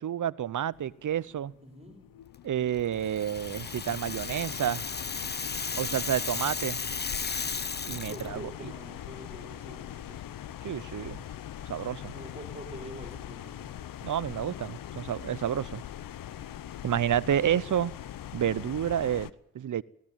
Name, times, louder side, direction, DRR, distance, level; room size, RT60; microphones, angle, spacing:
voice 1, 0.0-1.5 2.4-4.8 5.8-6.8 7.9-8.7 10.6-11.2 11.7-12.1 14.0-15.8 16.8-17.9 18.3-19.8, right 10 dB, 65° right, 0.8 m, -30 dB
sound 1, 0.7-19.3, left 11 dB, 80° left, 0.9 m, -42 dB
voice 2, 1.6-2.1 5.7-6.1 8.1-10.3 12.1-13.7, right 1 dB, 20° right, 4.8 m, -46 dB
Rattle (instrument), 3.0-8.3, left 4 dB, 30° left, 1.0 m, -35 dB
18.5 x 17.5 x 8.9 m
cardioid pair, 50°, 33 cm